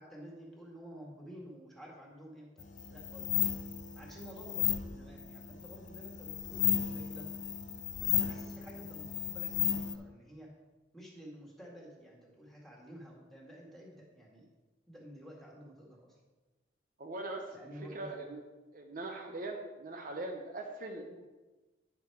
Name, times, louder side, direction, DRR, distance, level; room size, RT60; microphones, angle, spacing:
voice 1, 0.0-2.5 2.9-3.3 3.9-7.3 8.0-10.5 10.9-14.4 14.9-16.1 17.5-18.2 21.0-21.3, equal, ahead, -3 dB, 1.9 m, -51 dB
sound 1, 2.6-9.9, left 9 dB, 40° left, 0.6 m, -34 dB
voice 2, 17.0-18.4 18.7-21.0, right 2 dB, 45° right, 2 dB, 0.8 m, -41 dB
9.5 x 6.3 x 4.7 m, 1.2 s
head